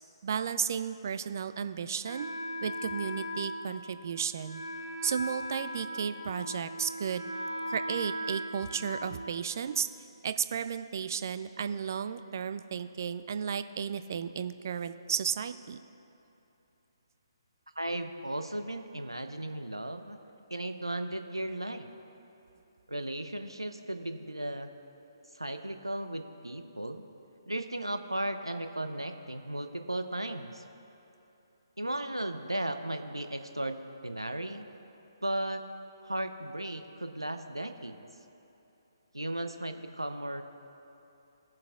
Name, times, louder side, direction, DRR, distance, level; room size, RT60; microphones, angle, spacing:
voice 1, 0.2-2.3 2.6-4.6 5.0-7.3 7.7-9.9 10.2-15.8, right 7 dB, 40° right, 11 dB, 0.4 m, -33 dB
Wind instrument woodwind instrument, 2.0-9.8, equal, 80° left, 1.6 m, -39 dB
voice 2, 17.8-20.2 20.5-21.9 22.9-24.7 25.3-27.0 27.5-30.6 31.8-34.7 35.2-35.6 36.0-38.1 39.1-40.4, right 1 dB, 85° right, 7 dB, 0.7 m, -35 dB
20.0 x 7.4 x 2.4 m, 2.9 s
figure-of-eight pair, 135°, 2 cm